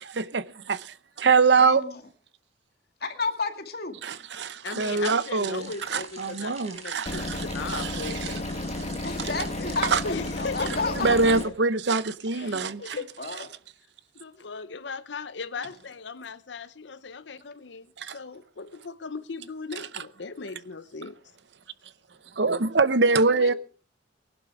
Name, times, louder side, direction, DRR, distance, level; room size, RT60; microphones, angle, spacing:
voice 1, 0.0-1.8 4.0-7.0 7.7-8.1 9.9-10.0 11.0-13.0 18.0-18.1 22.4-23.5, right 4 dB, 70° right, 0.8 m, -24 dB
voice 2, 1.6-2.0 3.0-4.0 9.0-11.4 12.4-13.5 23.3-23.5, left 3 dB, 55° left, 2.2 m, -32 dB
voice 3, 4.6-8.5 10.0-10.8 12.3-13.1 14.1-21.2, left 4 dB, 75° left, 0.8 m, -37 dB
sound 1, 5.6-11.5, right 4 dB, 35° right, 4.9 m, -45 dB
sound 2, 7.1-11.5, left 2 dB, 35° left, 1.2 m, -33 dB
20.0 x 11.5 x 4.8 m
head